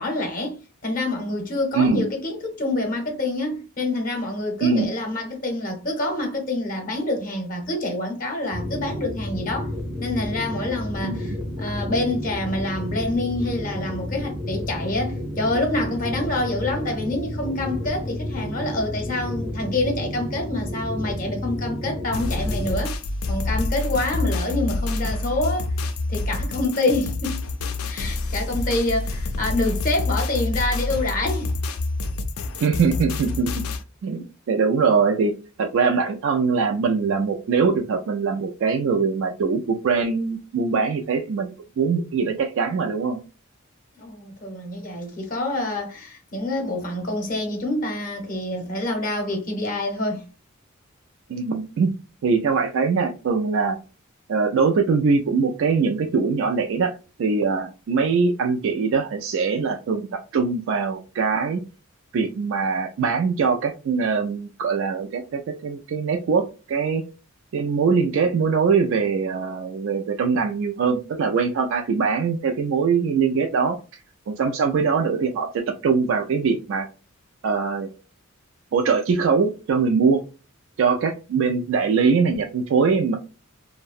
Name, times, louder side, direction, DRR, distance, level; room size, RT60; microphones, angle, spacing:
voice 1, 0.0-9.7 10.0-22.9 23.3-25.7 26.1-27.4 27.9-31.5 44.0-50.2, left 2 dB, 40° left, 0.7 m, -27 dB
voice 2, 1.7-2.1 4.6-4.9 11.0-11.4 32.6-33.5 34.0-35.3 35.6-43.2 51.3-51.9 52.2-53.8 54.3-61.6 62.1-67.0 67.5-73.8 74.3-76.9 77.4-77.9 78.7-80.2 80.8-83.1, right 5 dB, 65° right, 0.3 m, -22 dB
sound 1, 8.5-22.7, left 1 dB, ahead, 0.5 m, -31 dB
sound 2, 22.1-33.8, left 2 dB, 90° left, 0.4 m, -27 dB
2.6 x 2.1 x 2.4 m
head